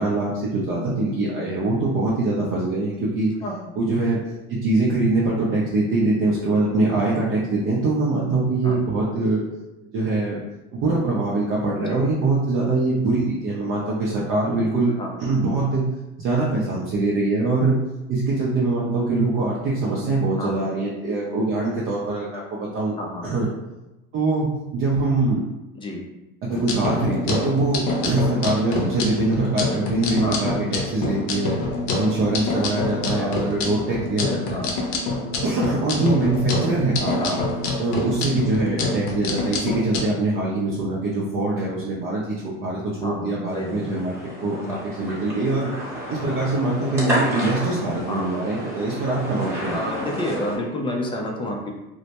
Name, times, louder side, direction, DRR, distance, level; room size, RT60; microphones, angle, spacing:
voice 1, 0.0-3.3 3.8-4.2 4.5-9.4 9.9-10.4 10.7-14.9 15.2-15.8 16.2-17.8 18.1-22.9 23.2-23.5 24.1-25.4 26.4-31.6 32.0-34.6 35.4-37.4 37.8-45.7 46.1-49.8, right 2 dB, 40° right, -5 dB, 0.5 m, -23 dB
voice 2, 11.7-12.1 15.0-15.1 20.4-20.7 23.0-23.3 25.8-26.0 30.2-30.6 33.2-33.4 34.5-34.7 37.2-37.5 43.0-43.8 48.1-48.4 49.7-51.7, left 1 dB, 15° left, 0 dB, 0.4 m, -30 dB
sound 1, 26.5-40.1, left 3 dB, 60° left, 0.6 m, -27 dB
sound 2, 43.5-50.6, equal, 10° right, 0.9 m, -31 dB
2.1 x 2.0 x 2.8 m, 0.99 s
supercardioid pair, 110°, 30 cm